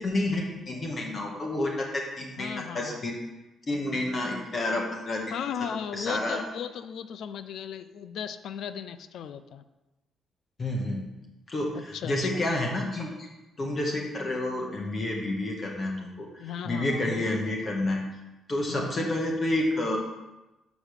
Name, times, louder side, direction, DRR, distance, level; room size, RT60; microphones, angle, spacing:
voice 1, 0.0-3.2 3.7-5.2 5.9-6.4 10.6-11.0 11.5-13.3 13.6-18.0 18.5-20.0, left 1 dB, 40° left, 0 dB, 1.5 m, -29 dB
voice 2, 2.4-3.0 5.3-9.6 11.9-12.5 16.4-17.3 18.7-18.9, left 8 dB, 70° left, 12 dB, 0.5 m, -36 dB
7.2 x 5.2 x 6.6 m, 1.0 s
cardioid pair, 90°, 0 cm